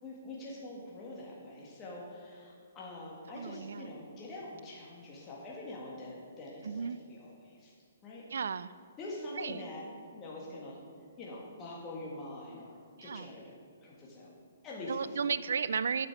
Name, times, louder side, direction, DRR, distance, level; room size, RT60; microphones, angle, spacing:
voice 1, 0.0-7.7 8.0-8.2 9.0-9.8 10.1-10.8 11.2-13.5 13.8-14.3 14.6-15.4, left 2 dB, 20° left, -4 dB, 1.6 m, -44 dB
voice 2, 3.3-3.9 6.6-7.0 8.3-8.7 9.4-9.6 13.0-13.3 14.9-16.1, right 6 dB, 75° right, 16 dB, 0.3 m, -34 dB
7.9 x 5.9 x 6.0 m, 2.2 s
hypercardioid pair, 145°, 0 cm